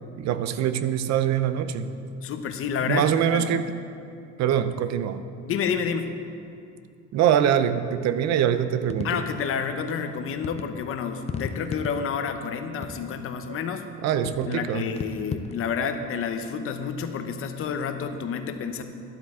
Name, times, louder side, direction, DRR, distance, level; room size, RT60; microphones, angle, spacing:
voice 1, 0.2-1.9 2.9-3.6 4.4-5.2 7.1-9.2 13.5-13.6 14.0-14.9, right 9 dB, 60° right, 12 dB, 0.6 m, -23 dB
voice 2, 2.2-3.6 5.4-6.1 9.0-13.9 14.5-18.8, left 6 dB, 45° left, 8 dB, 0.8 m, -29 dB
sound 1, 8.9-9.5 10.4-10.7 11.2-12.3 12.8-13.3 14.3-14.6 15.0-15.6, left 5 dB, 20° left, 0.4 m, -35 dB
12.0 x 12.0 x 3.7 m, 2.5 s
cardioid pair, 155°, 31 cm